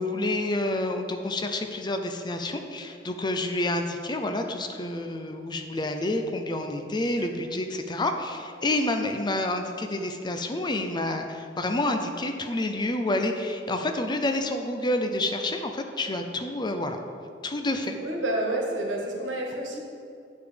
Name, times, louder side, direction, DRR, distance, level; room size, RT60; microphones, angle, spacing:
voice 1, 0.0-17.0 17.4-18.0, left 1 dB, 25° left, 6 dB, 0.5 m, -28 dB
voice 2, 18.0-19.8, right 1 dB, 85° right, 0 dB, 1.4 m, -29 dB
8.5 x 4.9 x 5.1 m, 2.5 s
head